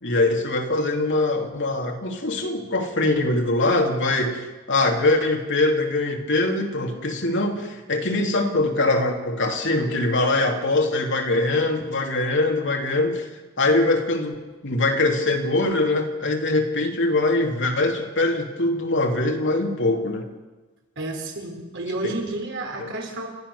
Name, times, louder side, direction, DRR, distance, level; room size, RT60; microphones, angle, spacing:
voice 1, 0.0-13.3 13.6-14.3 14.6-20.3 22.0-22.1 22.8-22.9, left 2 dB, 60° left, 3 dB, 2.9 m, -22 dB
voice 2, 21.0-23.3, right 2 dB, 60° right, 2 dB, 4.5 m, -30 dB
30.0 x 13.5 x 6.9 m, 1.2 s
head